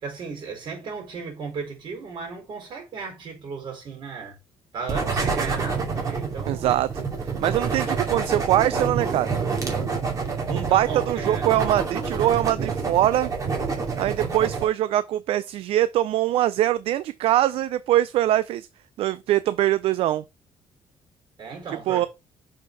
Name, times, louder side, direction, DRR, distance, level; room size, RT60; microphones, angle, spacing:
voice 1, 0.0-4.4 4.7-6.8 10.5-11.4 21.4-22.1, right 5 dB, 50° right, 4.5 m, -35 dB
sound 1, 4.9-14.6, right 5 dB, 35° right, 2.4 m, -27 dB
voice 2, 6.5-6.9 7.4-9.3 10.5-13.3 14.0-18.7 19.0-20.2 21.9-22.1, right 13 dB, 70° right, 0.4 m, -22 dB
6.6 x 4.2 x 4.7 m
cardioid pair, 115°, 10 cm